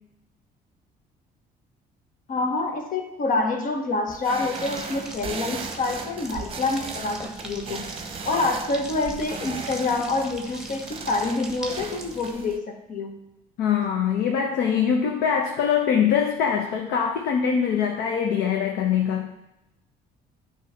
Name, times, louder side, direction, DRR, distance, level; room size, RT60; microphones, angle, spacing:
voice 1, 2.3-7.9 8.2-13.2, left 3 dB, 55° left, 4 dB, 1.2 m, -27 dB
sound 1, 4.1-12.6, right 5 dB, 35° right, 0.8 m, -37 dB
sound 2, 4.5-12.3, right 1 dB, 5° right, 1.4 m, -40 dB
voice 2, 13.6-19.3, left 7 dB, 80° left, 3 dB, 0.8 m, -23 dB
9.5 x 3.2 x 5.6 m, 0.91 s
cardioid pair, 110°, 17 cm